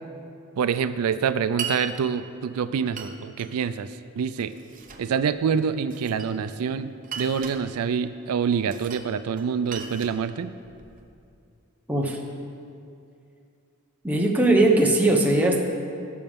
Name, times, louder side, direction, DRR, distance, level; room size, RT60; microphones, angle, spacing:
voice 1, 0.6-4.5 5.0-10.5, right 6 dB, 85° right, 11 dB, 0.4 m, -26 dB
Glass, 1.6-1.8 3.0-3.5 4.3-5.1 5.9-6.6 7.0-7.6 8.7-9.1 9.4-11.0, right 6 dB, 35° right, 0.8 m, -37 dB
voice 2, 11.9-12.2 14.0-15.6, right 2 dB, 5° right, -1 dB, 0.9 m, -19 dB
17.5 x 7.0 x 3.6 m, 2.5 s
head